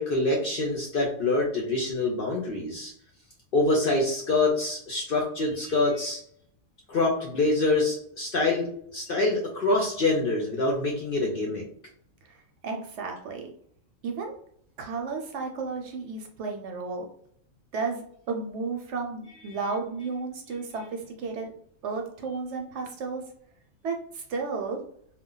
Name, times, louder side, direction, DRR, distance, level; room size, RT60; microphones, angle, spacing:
voice 1, 0.0-2.9 3.5-6.2 6.9-11.7, left 2 dB, 60° left, -1 dB, 0.6 m, -25 dB
voice 2, 12.6-13.5 14.0-14.3 14.8-17.1 17.7-21.5 21.8-23.2 23.8-24.8, right 4 dB, 65° right, 3 dB, 0.8 m, -33 dB
2.2 x 2.2 x 3.7 m, 0.64 s
omnidirectional pair, 1.4 m